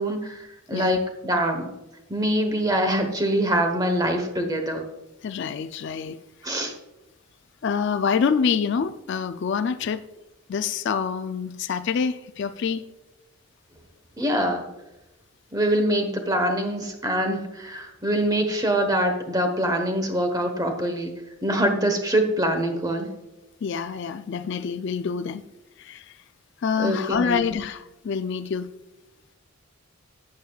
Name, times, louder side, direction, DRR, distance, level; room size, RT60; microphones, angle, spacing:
voice 1, 0.0-1.7 2.1-4.8 6.4-6.7 14.2-14.6 15.5-21.1 21.4-23.1 26.8-27.5, right 1 dB, 15° right, 5 dB, 1.0 m, -24 dB
voice 2, 5.2-6.2 7.6-10.1 10.5-12.8 23.6-25.4 25.8-26.2 26.6-28.7, left 6 dB, 55° left, 12 dB, 0.3 m, -26 dB
11.5 x 8.7 x 2.3 m, 0.99 s
head